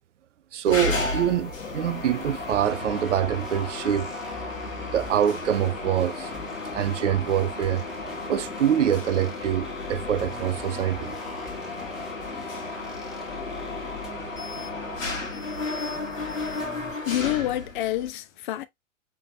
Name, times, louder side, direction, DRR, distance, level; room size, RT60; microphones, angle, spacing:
voice 1, 0.5-4.3 4.9-6.3 6.6-7.8 8.3-11.1, right 10 dB, 65° right, 0.5 m, -25 dB
Mechanisms, 0.7-18.1, left 3 dB, 85° left, 1.4 m, -34 dB
sound 1, 0.7-17.0, left 2 dB, ahead, 1.2 m, -41 dB
voice 2, 17.1-18.7, left 14 dB, 40° left, 0.6 m, -27 dB
5.6 x 3.4 x 2.5 m
figure-of-eight pair, 100°, 39 cm